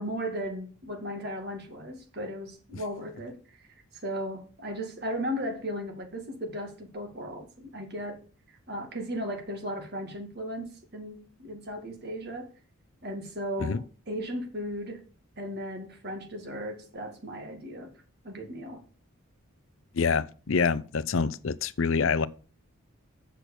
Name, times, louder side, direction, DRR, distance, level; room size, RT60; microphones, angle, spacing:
voice 1, 0.0-3.6 3.9-8.2 8.7-12.5 13.0-15.0 15.4-17.9 18.2-18.8, equal, 50° right, 2.2 m, -36 dB
voice 2, 19.9-22.3, left 5 dB, 60° left, 0.5 m, -26 dB
7.8 x 6.3 x 6.7 m
head